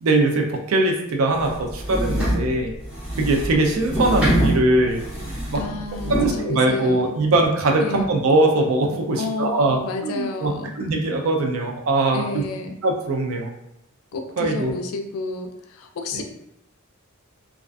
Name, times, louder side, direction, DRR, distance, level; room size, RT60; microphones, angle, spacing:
voice 1, 0.0-2.7 3.2-5.0 5.5-5.6 6.1-12.4 12.8-13.5 14.4-14.7 16.1-16.2, right 2 dB, 65° right, 2 dB, 0.4 m, -21 dB
sound 1, 1.4-6.4, equal, 5° right, 0.7 m, -25 dB
voice 2, 5.5-7.2 7.8-8.1 9.2-10.7 12.1-12.8 14.1-16.2, left 3 dB, 75° left, 5 dB, 0.3 m, -31 dB
2.4 x 2.2 x 2.4 m, 0.81 s
head